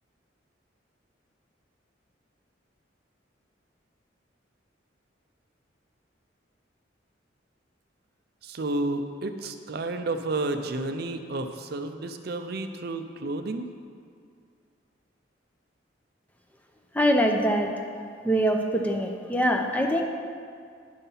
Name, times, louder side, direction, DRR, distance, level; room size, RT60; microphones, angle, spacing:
voice 1, 8.4-13.7, right 2 dB, 55° right, 7 dB, 0.5 m, -31 dB
voice 2, 16.9-17.7 18.2-20.0, equal, 10° left, 3 dB, 0.6 m, -23 dB
10.5 x 5.7 x 5.5 m, 2.2 s
head